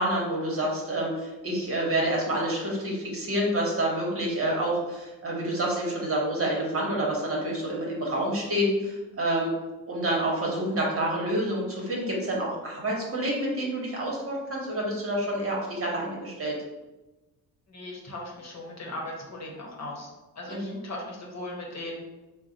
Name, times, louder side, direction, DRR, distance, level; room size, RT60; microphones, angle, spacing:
voice 1, 0.0-9.5 9.9-16.6 20.5-20.8, right 1 dB, 35° right, -3 dB, 1.3 m, -28 dB
voice 2, 17.7-20.1 20.3-22.1, left 1 dB, 45° left, -1 dB, 1.1 m, -38 dB
3.8 x 2.3 x 3.9 m, 1.1 s
cardioid pair, 85°, 39 cm